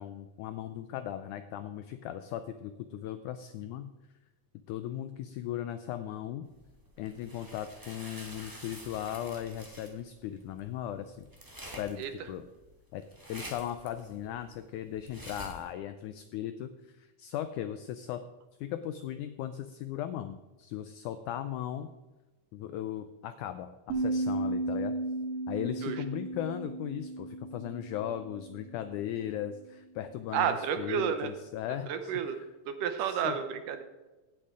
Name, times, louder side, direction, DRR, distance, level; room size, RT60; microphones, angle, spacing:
voice 1, 0.0-3.9 4.7-6.5 7.0-11.3 11.8-12.5 12.9-13.0 13.3-18.2 18.6-21.9 22.5-25.0 25.5-32.5 33.0-33.3, left 11 dB, 80° left, 10 dB, 1.8 m, -37 dB
sound 1, 6.5-15.7, right 1 dB, 20° right, 0.5 m, -48 dB
sound 2, 23.9-29.0, right 2 dB, 50° right, 2.6 m, -35 dB
voice 2, 30.3-31.3 31.9-32.4 32.7-33.8, right 8 dB, 75° right, 8 dB, 2.4 m, -31 dB
17.0 x 8.1 x 3.7 m, 1.1 s
omnidirectional pair, 4.0 m